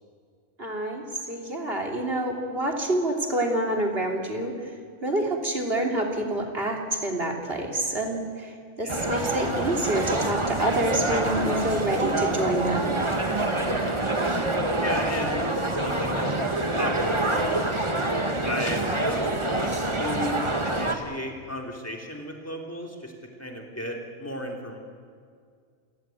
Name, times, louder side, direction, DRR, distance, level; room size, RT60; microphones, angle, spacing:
voice 1, 0.6-4.5 5.0-13.0, right 1 dB, 45° right, 2 dB, 3.3 m, -27 dB
sound 1, 8.9-21.0, right 2 dB, 20° right, 1.8 m, -26 dB
voice 2, 13.6-14.0 14.8-16.4 16.7-17.9 18.4-19.7 20.0-23.1 23.4-24.8, equal, 10° left, 1 dB, 3.4 m, -34 dB
28.5 x 17.0 x 9.3 m, 2.1 s
omnidirectional pair, 1.4 m